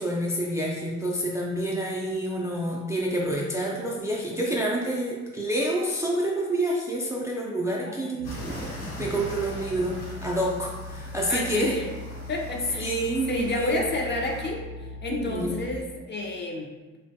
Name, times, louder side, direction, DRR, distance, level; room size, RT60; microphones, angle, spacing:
voice 1, 0.0-11.8 12.8-13.8 15.2-15.6, right 1 dB, 10° right, -3 dB, 0.3 m, -28 dB
voice 2, 7.7-8.3 11.3-11.9 12.3-13.0 13.3-16.7, left 2 dB, 35° left, 0 dB, 0.6 m, -30 dB
sound 1, 8.2-14.5, equal, 80° left, 1.0 m, -42 dB
sound 2, 8.2-15.7, left 2 dB, 85° right, 0.5 m, -40 dB
3.0 x 2.2 x 2.7 m, 1.2 s
cardioid pair, 90°, 30 cm